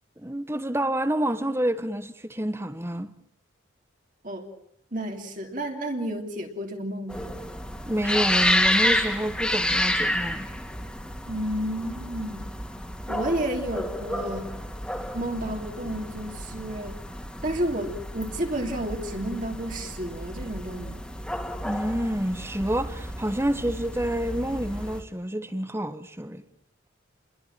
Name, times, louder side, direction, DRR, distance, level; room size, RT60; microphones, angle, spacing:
voice 1, 0.2-3.1 7.9-10.5 21.6-26.4, right 1 dB, 10° right, 1.3 m, -28 dB
voice 2, 4.9-7.4 11.3-12.5 13.1-14.5 15.1-17.0 17.4-21.0, right 1 dB, 40° right, 3.4 m, -31 dB
sound 1, 7.1-25.0, left 1 dB, 5° left, 2.7 m, -30 dB
29.5 x 22.5 x 7.5 m
head